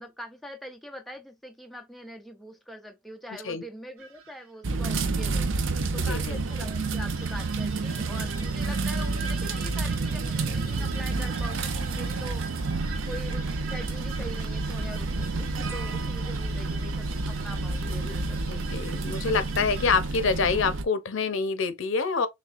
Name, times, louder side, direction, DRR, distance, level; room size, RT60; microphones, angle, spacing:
voice 1, 0.0-12.5 13.1-18.4, equal, ahead, 0.4 m, -43 dB
sound 1, 4.0-4.5 5.4-20.0, right 6 dB, 80° right, 0.9 m, -43 dB
sound 2, 4.6-20.8, right 3 dB, 60° right, 0.6 m, -29 dB
voice 2, 6.1-6.4 18.5-22.3, left 4 dB, 60° left, 0.7 m, -26 dB
6.5 x 2.3 x 2.5 m
head